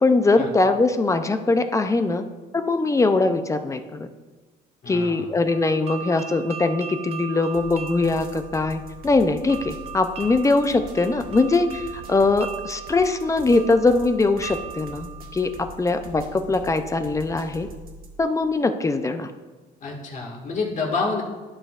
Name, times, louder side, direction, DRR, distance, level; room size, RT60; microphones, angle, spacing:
voice 1, 0.0-2.2 2.5-4.1 4.9-15.5 15.8-17.7 18.2-19.3, left 3 dB, 20° left, 8 dB, 0.5 m, -21 dB
voice 2, 4.8-5.2 19.8-21.2, left 4 dB, 45° left, -1 dB, 1.8 m, -28 dB
sound 1, 5.5-16.3, right 7 dB, 35° right, 0.5 m, -39 dB
sound 2, 7.5-18.2, right 1 dB, 60° right, 1.3 m, -43 dB
12.0 x 5.4 x 2.4 m, 1.3 s
cardioid pair, 110°, 17 cm